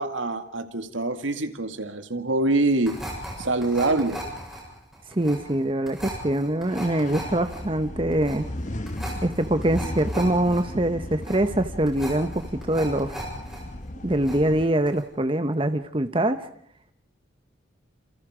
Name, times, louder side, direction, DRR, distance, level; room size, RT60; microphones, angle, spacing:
voice 1, 0.0-3.0 3.4-4.2, right 2 dB, 90° right, 8 dB, 2.1 m, -25 dB
sound 1, 2.8-13.6 13.9-14.6 14.9-15.0, right 1 dB, ahead, 7.6 m, -38 dB
voice 2, 5.1-8.5 9.2-13.2 14.0-16.5, right 1 dB, 30° right, 10 dB, 0.9 m, -24 dB
sound 2, 6.7-14.7, left 1 dB, 40° left, 1.2 m, -36 dB
28.5 x 28.5 x 5.0 m, 0.64 s
head